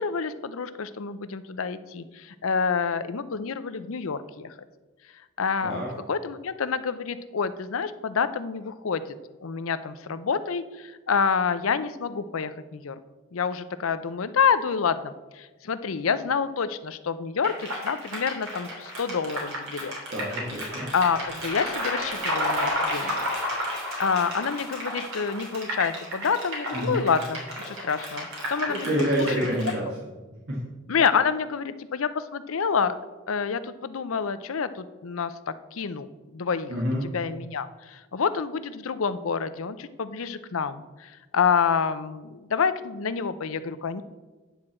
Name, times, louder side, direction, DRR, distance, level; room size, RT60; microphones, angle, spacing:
voice 1, 0.0-4.5 5.4-5.8 6.1-9.0 9.4-13.0 13.3-19.9 20.9-23.2 24.0-29.5 30.9-33.0 33.3-36.7 37.0-44.0, left 6 dB, 75° left, 13 dB, 0.6 m, -28 dB
sound 1, 17.4-29.7, equal, 85° right, 3.0 m, -32 dB
voice 2, 20.1-20.9 26.7-27.0 28.7-29.9 30.5-30.6 36.7-37.0, equal, 60° right, -5 dB, 1.8 m, -27 dB
9.7 x 4.6 x 7.4 m, 1.2 s
head